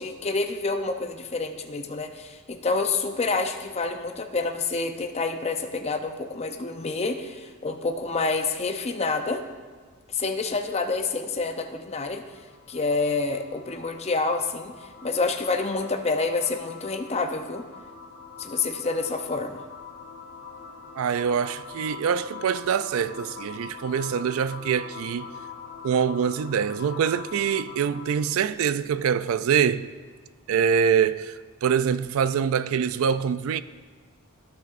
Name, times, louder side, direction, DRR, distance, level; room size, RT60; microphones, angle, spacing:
voice 1, 0.0-9.4 10.1-12.2 12.7-17.6 18.4-19.6, left 3 dB, 30° left, 0.6 m, -28 dB
sound 1, 11.7-28.4, left 5 dB, 70° left, 1.8 m, -44 dB
voice 2, 21.0-25.3 25.8-29.9 30.5-33.6, right 7 dB, 65° right, 0.3 m, -24 dB
15.0 x 6.3 x 2.5 m
head